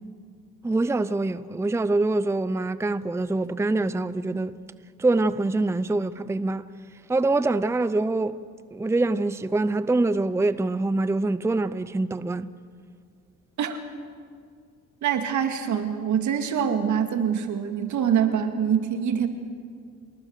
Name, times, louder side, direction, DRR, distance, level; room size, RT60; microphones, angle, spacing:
voice 1, 0.6-4.6 5.0-6.6 7.1-8.4 8.7-12.5, right 2 dB, 10° right, 0.6 m, -24 dB
voice 2, 15.0-19.3, right 8 dB, 75° right, 2.2 m, -24 dB
27.5 x 19.5 x 6.6 m
cardioid pair, 90°, 30 cm